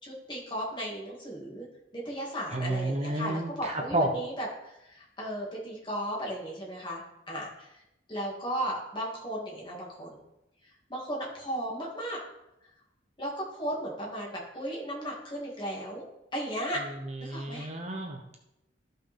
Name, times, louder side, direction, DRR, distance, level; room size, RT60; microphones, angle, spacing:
voice 1, 0.0-1.7 1.9-7.8 8.1-10.1 10.6-12.2 13.2-16.0 16.3-16.8 17.2-17.7, equal, 25° left, -4 dB, 2.5 m, -35 dB
voice 2, 2.5-4.1 17.3-18.4, right 1 dB, 35° right, 2 dB, 0.9 m, -31 dB
14.0 x 5.6 x 3.7 m, 0.89 s
head